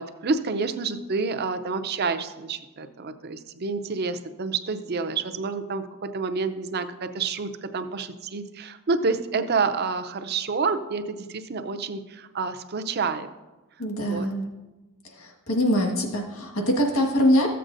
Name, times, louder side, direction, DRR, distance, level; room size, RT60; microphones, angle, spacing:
voice 1, 0.0-13.3 14.0-14.3, right 4 dB, 50° right, 10 dB, 0.5 m, -28 dB
voice 2, 13.8-14.5 15.2-17.5, equal, 75° left, 1 dB, 1.6 m, -23 dB
14.5 x 7.7 x 2.6 m, 1.1 s
head